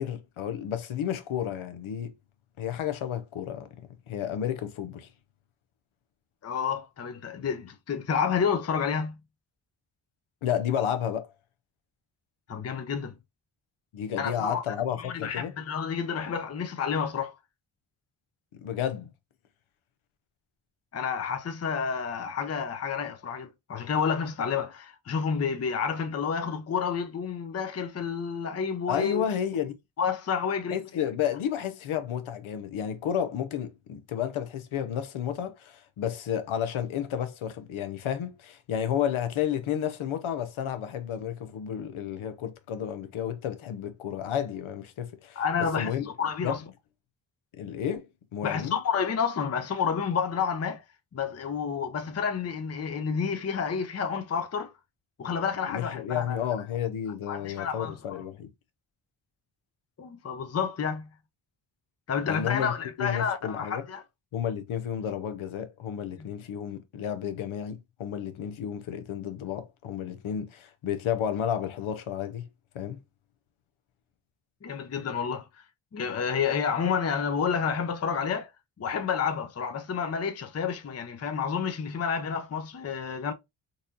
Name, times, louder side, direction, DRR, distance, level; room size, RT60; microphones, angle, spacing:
voice 1, 0.0-2.1 2.6-3.7 4.1-5.1 10.4-11.3 13.9-15.5 18.5-19.1 28.9-29.8 30.7-46.0 46.4-46.6 47.5-48.8 55.7-58.5 62.3-62.7 63.0-63.8 64.3-72.5 72.7-73.0, left 9 dB, 85° left, 0.7 m, -31 dB
voice 2, 6.4-9.2 12.5-13.2 14.2-14.6 15.0-17.4 20.9-29.3 30.0-30.8 45.4-46.6 48.4-50.8 51.1-54.7 55.2-56.4 57.3-58.0 60.0-61.1 62.1-64.0 74.6-75.6 75.9-78.5 78.8-83.3, left 6 dB, 30° left, 0.6 m, -30 dB
4.0 x 2.5 x 2.6 m
cardioid pair, 55°, 48 cm